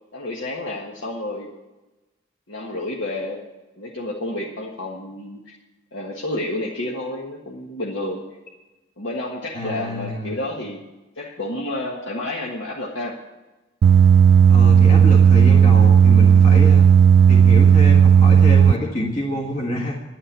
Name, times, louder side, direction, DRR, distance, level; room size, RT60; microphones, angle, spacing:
voice 1, 0.1-1.5 2.5-3.4 3.8-5.6 5.9-8.2 9.0-10.8 11.1-13.1, left 1 dB, 70° left, -2 dB, 1.6 m, -30 dB
voice 2, 9.5-10.4 14.5-16.9 17.3-20.0, left 1 dB, 40° left, -2 dB, 1.8 m, -27 dB
sound 1, 13.8-18.7, right 7 dB, 60° right, 0.3 m, -12 dB
11.0 x 8.8 x 8.5 m, 1.1 s
head